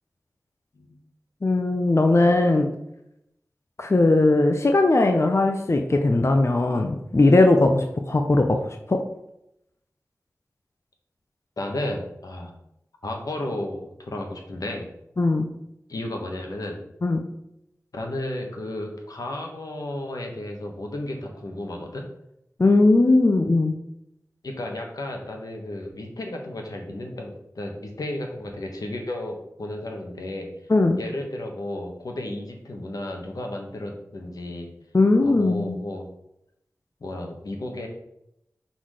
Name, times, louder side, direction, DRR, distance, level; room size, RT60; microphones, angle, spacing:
voice 1, 1.4-2.7 3.8-8.6 8.9-9.0 15.2-15.5 17.0-17.2 22.6-23.8 30.7-31.0 34.9-35.8, left 2 dB, 50° left, 4 dB, 0.7 m, -19 dB
voice 2, 11.6-12.5 13.0-14.9 15.9-16.8 17.9-22.0 24.4-30.5 31.0-34.7 35.2-36.1 37.0-37.9, left 1 dB, 85° left, 2 dB, 1.2 m, -33 dB
6.0 x 4.1 x 4.8 m, 0.82 s
cardioid pair, 40°, 6 cm